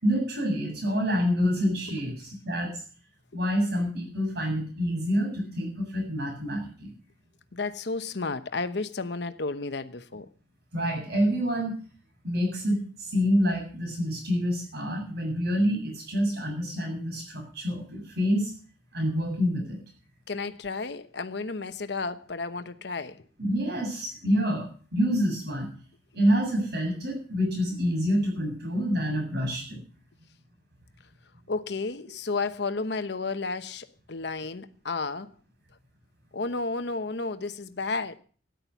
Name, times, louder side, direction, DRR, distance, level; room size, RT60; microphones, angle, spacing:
voice 1, 0.0-2.8 3.3-6.9 10.7-11.7 12.2-18.5 18.9-19.8 23.4-25.7 26.1-29.8, equal, 60° right, 7.7 m, -27 dB
voice 2, 7.5-10.3 20.3-23.2 31.5-35.3 36.3-38.1, left 3 dB, 65° left, 1.0 m, -32 dB
13.5 x 10.5 x 7.1 m
head